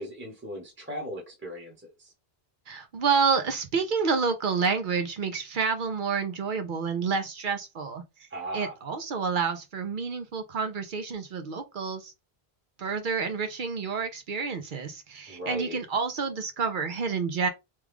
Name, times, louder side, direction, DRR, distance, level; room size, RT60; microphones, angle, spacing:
voice 1, 0.0-2.1 8.3-8.7 15.3-15.8, right 1 dB, 10° right, 1.0 m, -37 dB
voice 2, 2.7-8.0 8.5-12.1 12.8-17.5, right 5 dB, 60° right, 0.7 m, -29 dB
3.1 x 2.3 x 3.4 m
omnidirectional pair, 1.1 m